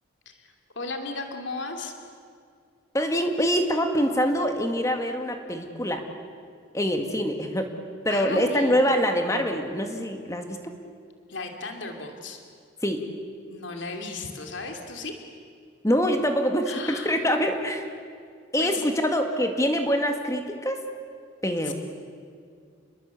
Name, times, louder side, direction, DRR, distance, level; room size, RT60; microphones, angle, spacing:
voice 1, 0.3-1.9 8.1-8.8 11.3-12.4 13.5-15.2 16.7-17.1 18.6-18.8 21.6-21.7, left 3 dB, 70° left, 4 dB, 2.7 m, -35 dB
voice 2, 2.9-6.0 6.7-7.7 8.0-10.7 12.8-13.0 15.8-17.9 18.5-20.8 21.4-21.7, equal, 15° left, 4 dB, 1.9 m, -25 dB
29.0 x 21.5 x 8.4 m, 2.2 s
head